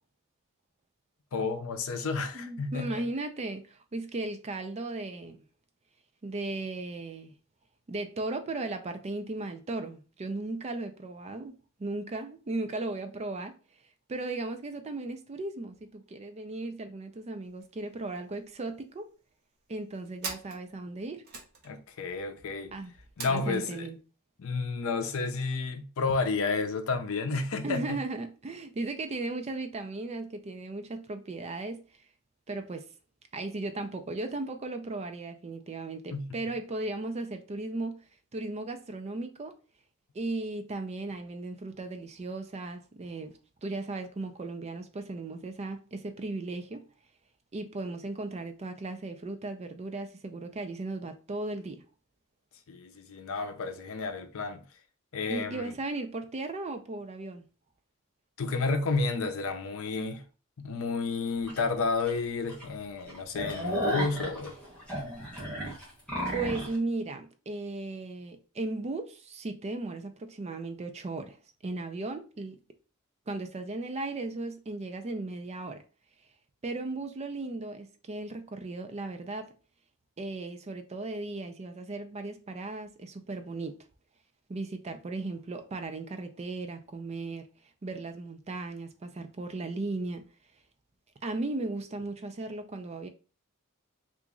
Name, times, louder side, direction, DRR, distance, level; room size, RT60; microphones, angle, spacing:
voice 1, 1.3-3.0 21.6-22.7 23.2-23.9 24.4-28.0 36.1-36.4 52.7-54.6 55.1-55.7 58.4-60.2 60.6-64.6, left 4 dB, 65° left, 0.5 m, -31 dB
voice 2, 2.3-5.4 6.2-7.3 7.9-11.5 11.8-13.5 14.1-19.1 19.7-21.2 22.7-22.9 23.3-24.0 27.6-31.8 32.5-32.8 33.3-38.0 38.3-39.5 40.1-46.9 47.5-51.8 55.3-57.4 66.3-71.4 71.6-72.6 73.3-75.8 76.6-79.5 80.2-83.8 84.5-87.5 87.8-90.2 91.2-93.1, right 2 dB, 30° right, 0.4 m, -36 dB
sound 1, 17.4-17.7 18.0-18.1 18.3-19.0 19.6-23.6, right 4 dB, 45° right, 0.8 m, -44 dB
sound 2, 61.5-61.6 62.1-62.2 62.5-62.6 63.0-66.8, equal, 5° left, 1.3 m, -33 dB
2.9 x 2.5 x 3.7 m
head